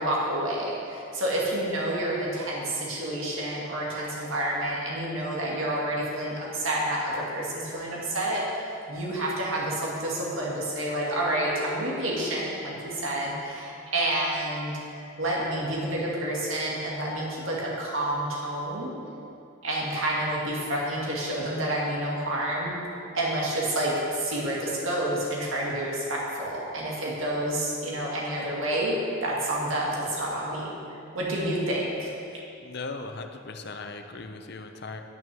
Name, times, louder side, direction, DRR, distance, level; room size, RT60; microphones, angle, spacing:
voice 1, 0.0-14.7 15.2-18.9 19.6-22.8 23.1-30.7 31.1-32.1, right 1 dB, 80° right, -4 dB, 2.0 m, -29 dB
voice 2, 32.3-35.0, left 3 dB, 55° left, 6 dB, 0.7 m, -38 dB
10.5 x 6.4 x 6.2 m, 2.6 s
head